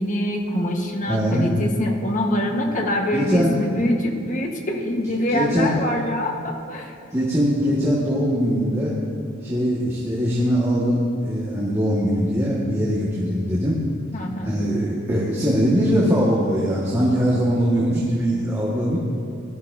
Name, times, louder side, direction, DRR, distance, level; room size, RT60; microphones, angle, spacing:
voice 1, 0.0-6.9 14.1-14.6, left 1 dB, 40° left, 1 dB, 1.4 m, -24 dB
voice 2, 1.1-1.5 3.1-3.6 5.3-5.8 7.1-9.0 9.4-13.8 14.4-19.0, equal, 15° right, -7 dB, 1.8 m, -21 dB
18.5 x 12.5 x 2.7 m, 2.5 s
head